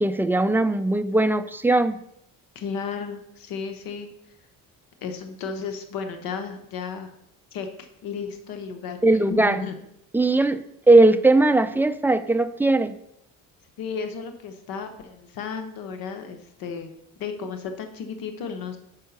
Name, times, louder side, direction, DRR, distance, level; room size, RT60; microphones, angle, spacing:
voice 1, 0.0-2.0 9.0-9.6 10.1-12.9, right 2 dB, 5° right, 10 dB, 0.3 m, -19 dB
voice 2, 2.5-4.1 5.0-7.1 7.5-9.0 9.3-9.8 13.8-16.9 17.2-18.8, left 6 dB, 85° left, 7 dB, 0.9 m, -33 dB
5.5 x 5.5 x 6.8 m, 0.78 s
cardioid pair, 110°, 34 cm